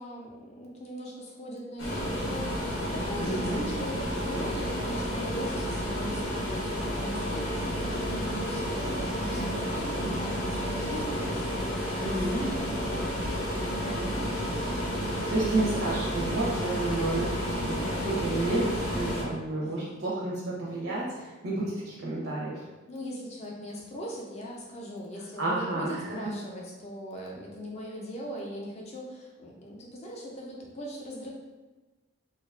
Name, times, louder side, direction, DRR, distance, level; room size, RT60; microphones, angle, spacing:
voice 1, 0.0-14.6 19.6-20.0 22.9-31.3, equal, 35° left, -1 dB, 0.4 m, -40 dB
sound 1, 1.8-19.2, equal, 75° left, 0.6 m, -31 dB
voice 2, 3.2-3.6 12.0-12.4 15.3-22.7 25.4-26.2, right 2 dB, 70° right, -5 dB, 0.5 m, -31 dB
2.5 x 2.3 x 2.3 m, 1.2 s
head